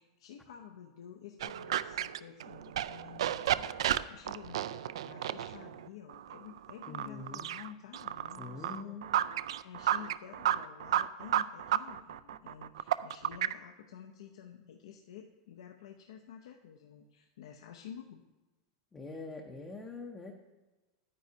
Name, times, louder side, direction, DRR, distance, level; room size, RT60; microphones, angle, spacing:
voice 1, 0.0-9.0 9.6-18.2, left 9 dB, 75° left, 4 dB, 0.6 m, -51 dB
sound 1, 1.4-13.5, right 11 dB, 85° right, 0.3 m, -33 dB
voice 2, 6.9-7.5 8.4-9.2 18.9-20.3, left 3 dB, 10° left, 1 dB, 0.6 m, -44 dB
10.5 x 9.4 x 2.7 m, 1.1 s
supercardioid pair, 170°, 3 cm